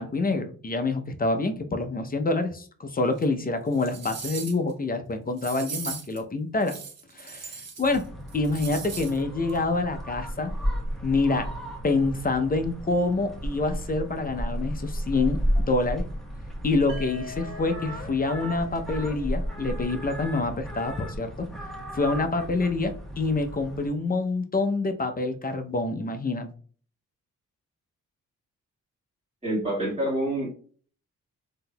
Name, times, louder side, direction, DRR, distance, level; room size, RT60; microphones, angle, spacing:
voice 1, 0.0-6.8 7.1-8.0 8.3-10.5 11.0-11.5 11.8-16.0 16.6-21.3 21.9-26.5, left 3 dB, 25° left, 7 dB, 0.6 m, -27 dB
sound 1, 3.2-3.3 3.7-4.7 5.4-6.2 6.6-8.0 8.3-9.2 9.5-9.6, right 5 dB, 50° right, 0.8 m, -38 dB
sound 2, 7.8-23.9, equal, ahead, 1.1 m, -33 dB
sound 3, 16.9-20.8, left 4 dB, 80° right, 0.6 m, -45 dB
voice 2, 29.4-30.5, right 1 dB, 20° right, -5 dB, 1.6 m, -27 dB
3.7 x 2.8 x 2.2 m, 0.43 s
cardioid pair, 55°, 33 cm